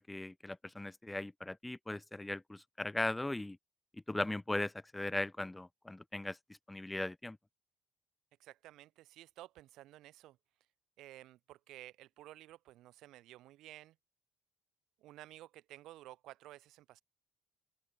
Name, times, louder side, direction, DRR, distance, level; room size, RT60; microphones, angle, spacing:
voice 1, 0.0-3.6 4.1-6.4 6.7-7.4, left 2 dB, 10° left, 0.8 m, -38 dB
voice 2, 8.4-10.4 11.0-13.9 15.0-17.0, right 15 dB, 75° right, 3.4 m, -54 dB
open air
cardioid pair, 125°, 0 cm